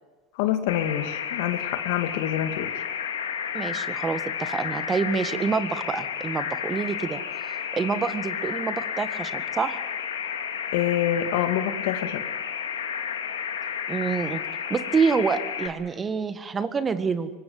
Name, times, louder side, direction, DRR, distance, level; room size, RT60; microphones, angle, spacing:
voice 1, 0.4-2.8 10.7-12.2, left 11 dB, 65° left, 8 dB, 2.2 m, -26 dB
sound 1, 0.7-15.7, left 8 dB, 85° left, 2.7 m, -32 dB
voice 2, 3.5-7.2 7.7-9.8 13.9-14.4 14.7-17.3, right 5 dB, 25° right, 11 dB, 1.7 m, -27 dB
24.5 x 20.5 x 7.9 m, 1.3 s
hypercardioid pair, 90°, 0 cm